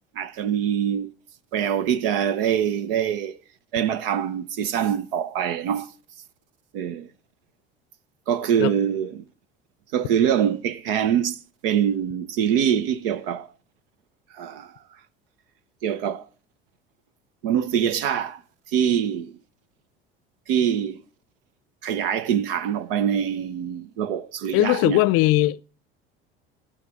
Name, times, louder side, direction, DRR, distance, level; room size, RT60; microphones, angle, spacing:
voice 1, 0.2-1.1 1.5-3.4 3.7-5.9 6.7-7.1 8.3-9.2 9.9-13.5 14.3-14.7 15.8-16.2 17.4-18.4 18.7-19.3 20.5-21.0 21.8-25.0, right 9 dB, 70° right, 0.8 m, -24 dB
voice 2, 24.5-25.6, left 18 dB, 50° left, 0.6 m, -19 dB
11.5 x 9.4 x 5.8 m
figure-of-eight pair, 65°, 30 cm